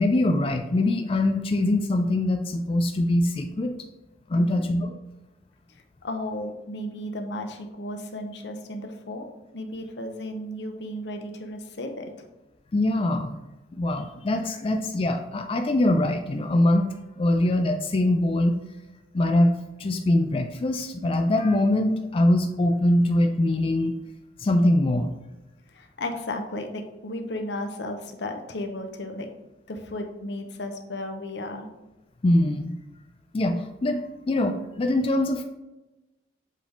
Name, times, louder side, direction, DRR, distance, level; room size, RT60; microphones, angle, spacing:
voice 1, 0.0-3.7 4.3-5.0 12.7-13.3 13.7-16.9 17.2-18.6 19.1-24.0 24.4-25.1 32.2-32.8 33.3-35.4, left 1 dB, 30° left, 5 dB, 0.3 m, -23 dB
voice 2, 4.3-4.6 6.0-9.3 9.5-12.1 25.7-29.3 29.7-31.7, left 1 dB, 80° left, 5 dB, 0.8 m, -34 dB
7.5 x 3.5 x 3.8 m, 1.0 s
head